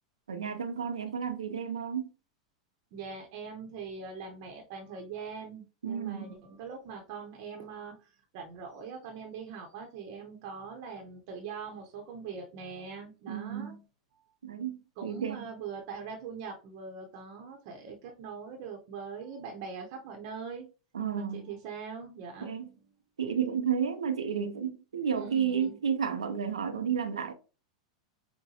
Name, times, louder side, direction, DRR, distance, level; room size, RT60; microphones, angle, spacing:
voice 1, 0.3-2.1 5.8-6.4 13.3-13.8 14.4-15.5 20.9-21.5 22.4-22.7 23.2-27.3, right 7 dB, 85° right, 0.5 m, -32 dB
voice 2, 2.9-13.7 15.0-20.7 21.2-22.9 25.1-25.8, right 5 dB, 55° right, 0.8 m, -42 dB
5.6 x 2.2 x 2.8 m
hypercardioid pair, 100°, 3 cm